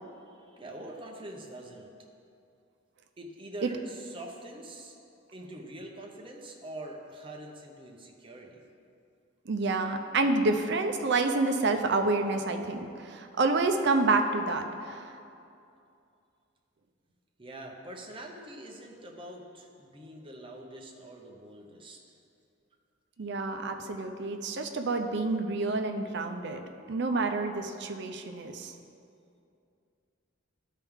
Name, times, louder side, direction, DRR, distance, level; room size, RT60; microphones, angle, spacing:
voice 1, 0.2-1.9 3.2-5.0 5.3-8.7 17.4-22.2, right 1 dB, 25° right, 1 dB, 0.8 m, -44 dB
voice 2, 9.5-15.1 23.2-26.6 26.9-28.7, right 3 dB, 60° right, 5 dB, 0.6 m, -28 dB
12.0 x 4.6 x 3.6 m, 2.6 s
head